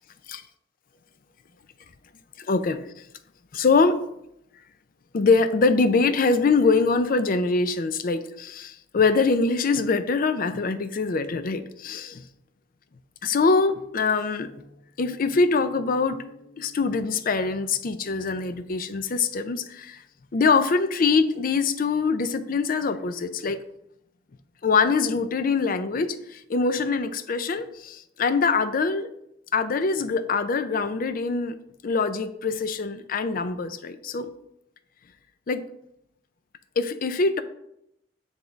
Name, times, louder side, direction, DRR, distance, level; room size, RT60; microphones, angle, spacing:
voice 1, 2.4-3.0 3.5-4.0 5.1-12.2 13.2-14.5 15.0-20.0 20.3-23.6 24.6-29.1 29.5-31.6 31.8-34.3 35.5-35.6 36.8-37.4, left 4 dB, 50° left, 11 dB, 0.5 m, -23 dB
7.1 x 3.5 x 3.9 m, 0.78 s
head